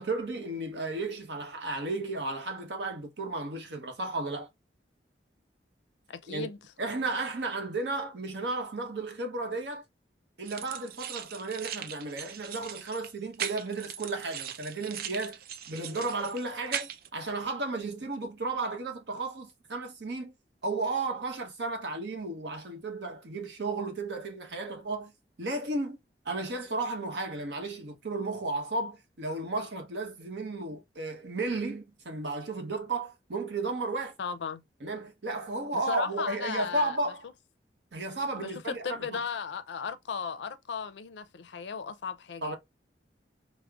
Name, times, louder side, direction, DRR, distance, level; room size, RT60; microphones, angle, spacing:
voice 1, 0.0-4.5 6.3-6.5 6.8-9.8 10.4-15.4 15.7-20.3 20.6-26.0 26.2-34.1 34.8-37.2 37.9-39.2 42.4-42.6, right 2 dB, 80° right, 0.9 m, -34 dB
voice 2, 6.1-6.6 34.2-34.6 35.7-37.0 37.2-37.3 38.4-42.6, left 6 dB, 90° left, 0.4 m, -36 dB
sound 1, 10.4-17.1, right 9 dB, 55° right, 0.4 m, -39 dB
4.8 x 2.0 x 2.3 m
head